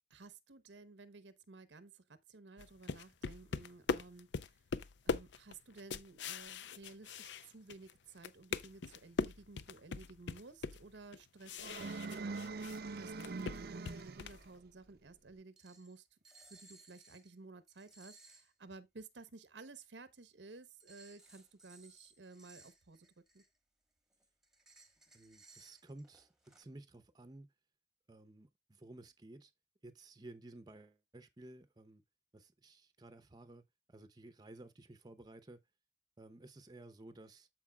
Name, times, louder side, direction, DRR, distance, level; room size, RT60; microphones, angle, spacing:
voice 1, 0.1-4.3 5.0-12.4 13.0-16.1 16.5-23.1 23.3-23.4, right 3 dB, 90° right, 0.9 m, -55 dB
sound 1, 2.6-7.9 8.2-12.8 13.1-14.5, left 5 dB, 80° left, 0.5 m, -41 dB
sound 2, 11.6-14.5, right 3 dB, 60° right, 0.6 m, -43 dB
sound 3, 14.5-14.6 15.6-16.0 16.3-17.3 17.7-18.5 20.8-23.6 24.1-26.6, right 3 dB, 5° right, 1.2 m, -62 dB
voice 2, 25.1-26.3 26.6-27.5 28.1-29.5 29.8-32.0 32.3-33.6 33.9-35.6 36.2-37.5, right 2 dB, 25° right, 0.7 m, -54 dB
13.5 x 4.6 x 2.3 m
head